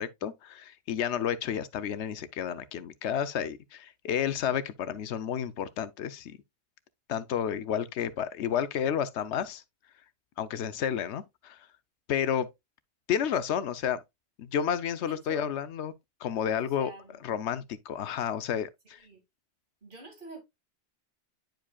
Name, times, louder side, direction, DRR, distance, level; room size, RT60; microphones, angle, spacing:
voice 1, 0.0-6.4 7.1-9.6 10.4-11.7 12.1-12.5 13.1-14.0 14.4-15.9 16.2-16.9 17.2-19.0, left 8 dB, 80° left, 0.9 m, -31 dB
voice 2, 15.0-15.5 16.6-17.2 19.0-19.2 19.8-20.4, right 3 dB, 45° right, 2.3 m, -46 dB
10.5 x 4.9 x 2.2 m
omnidirectional pair, 1.2 m